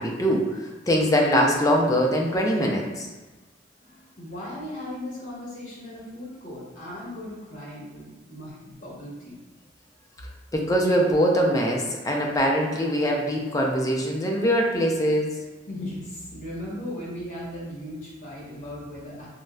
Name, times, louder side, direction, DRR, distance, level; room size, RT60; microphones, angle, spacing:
voice 1, 0.0-3.1 10.5-15.3, equal, 20° left, -1 dB, 0.4 m, -22 dB
voice 2, 3.8-9.4 15.7-19.3, left 1 dB, 45° left, -6 dB, 1.1 m, -37 dB
3.8 x 2.0 x 2.2 m, 1.2 s
head